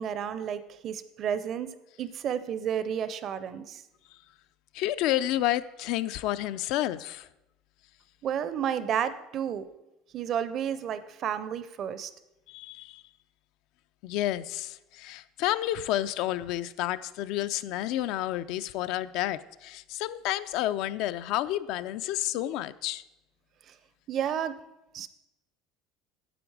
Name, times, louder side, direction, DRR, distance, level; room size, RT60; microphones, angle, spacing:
voice 1, 0.0-3.8 8.2-9.7 10.1-12.1 23.7-23.8 24.1-24.6 24.9-25.1, right 8 dB, 40° right, 0.6 m, -31 dB
voice 2, 4.7-7.3 12.5-13.0 14.0-23.0, left 14 dB, 65° left, 0.4 m, -30 dB
10.0 x 7.8 x 4.7 m
cardioid pair, 145°, 0 cm